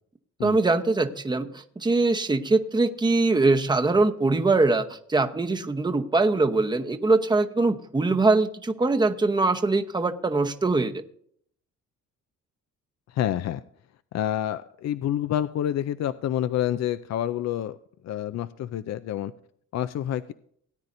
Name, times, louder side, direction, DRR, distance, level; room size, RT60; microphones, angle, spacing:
voice 1, 0.4-11.0, right 3 dB, 15° right, 7 dB, 0.9 m, -22 dB
voice 2, 13.1-13.6 14.1-17.8 18.0-19.3 19.7-20.3, left 11 dB, 60° left, 12 dB, 0.5 m, -28 dB
17.5 x 9.6 x 2.6 m, 0.65 s
cardioid pair, 90°, 30 cm